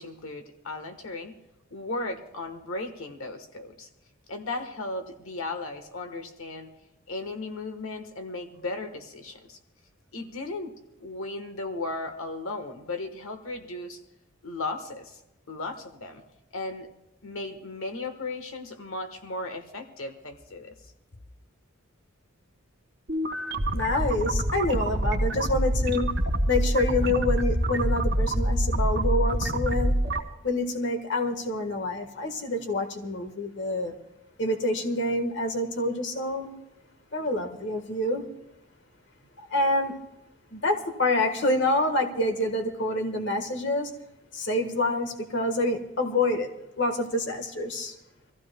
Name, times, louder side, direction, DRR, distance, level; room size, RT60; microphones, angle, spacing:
voice 1, 0.0-1.4 1.7-3.9 4.3-6.7 7.1-9.6 10.1-10.7 11.0-14.0 14.4-15.2 15.5-16.2 16.5-16.9 17.2-20.9, left 2 dB, 85° left, 7 dB, 1.3 m, -36 dB
sound 1, 23.1-30.2, right 1 dB, 55° right, 2.1 m, -26 dB
voice 2, 23.7-26.1 26.5-29.9 30.4-33.9 34.4-36.6 37.1-38.2 39.5-40.0 40.5-43.9 44.3-46.5 46.8-47.9, left 2 dB, 55° left, 6 dB, 1.4 m, -27 dB
25.5 x 15.5 x 2.2 m, 0.95 s
head